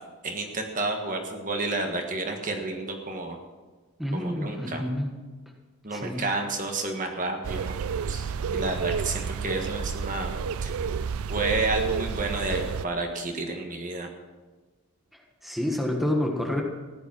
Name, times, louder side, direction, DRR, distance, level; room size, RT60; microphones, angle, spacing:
voice 1, 0.2-3.4 4.1-4.8 5.8-7.7 8.1-10.3 10.6-10.7 11.3-14.1, right 2 dB, 35° right, 3 dB, 1.5 m, -30 dB
voice 2, 4.0-5.2 5.9-6.2 15.1-16.6, left 1 dB, ahead, 0 dB, 1.4 m, -29 dB
sound 1, 7.4-12.9, right 6 dB, 75° right, 0.5 m, -30 dB
15.5 x 10.5 x 6.1 m, 1.3 s
head